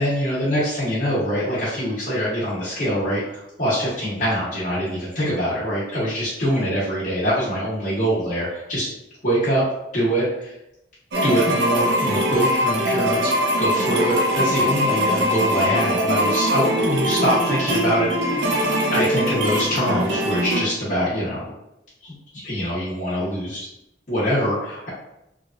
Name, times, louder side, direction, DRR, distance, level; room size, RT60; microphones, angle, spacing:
voice 1, 0.0-8.9 9.2-9.6 9.9-10.5 11.2-13.3 13.6-18.5 18.9-21.5 22.0-23.7 24.1-24.9, equal, 45° left, -12 dB, 1.0 m, -24 dB
sound 1, 11.1-20.7, equal, 75° right, 0.6 m, -22 dB
3.0 x 2.3 x 2.5 m, 0.85 s
head